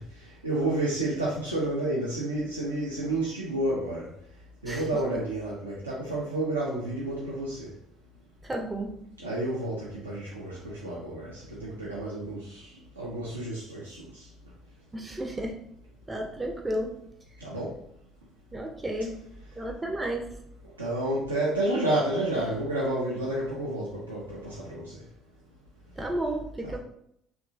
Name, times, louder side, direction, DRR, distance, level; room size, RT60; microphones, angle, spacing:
voice 1, 0.4-4.1 4.6-7.7 9.2-12.6 13.0-14.0 17.4-17.7 20.8-24.9 26.6-26.8, right 1 dB, 90° right, -6 dB, 0.4 m, -30 dB
voice 2, 8.5-8.9 14.9-15.5 16.1-16.9 18.5-19.2 19.6-20.3 26.0-26.8, right 1 dB, 15° right, 2 dB, 0.4 m, -32 dB
2.9 x 2.2 x 2.5 m, 0.72 s
figure-of-eight pair, 55°, 0 cm